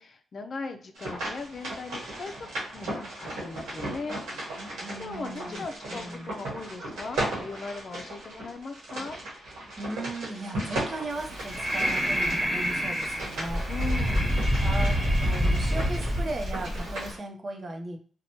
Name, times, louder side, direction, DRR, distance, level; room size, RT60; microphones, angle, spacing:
voice 1, 0.0-4.2 5.0-9.2 13.7-14.3, left 3 dB, 55° left, 6 dB, 0.4 m, -38 dB
sound 1, 1.0-17.2, right 1 dB, 90° right, 1.1 m, -36 dB
voice 2, 4.8-6.3 9.8-13.6 13.9-18.0, right 2 dB, 45° right, 3 dB, 0.6 m, -37 dB
Breathing, 11.1-17.1, equal, 25° right, 1.2 m, -27 dB
2.9 x 2.2 x 2.8 m, 0.44 s
supercardioid pair, 55°, 0 cm